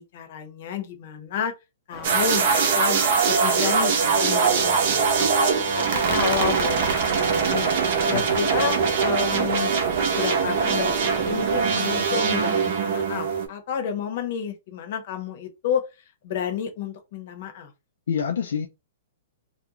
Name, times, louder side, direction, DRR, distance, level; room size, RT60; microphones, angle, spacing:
voice 1, 0.0-1.5 1.9-5.3 5.7-7.7 8.1-9.7 10.1-15.8 16.2-17.7, left 8 dB, 55° left, 0.8 m, -31 dB
sound 1, 1.9-7.6, right 3 dB, 15° right, 0.6 m, -41 dB
sound 2, 2.0-13.5, right 5 dB, 55° right, 0.7 m, -22 dB
voice 2, 8.1-8.4 18.1-18.7, left 7 dB, 85° left, 0.4 m, -27 dB
2.4 x 2.1 x 2.8 m
hypercardioid pair, 150°, 0 cm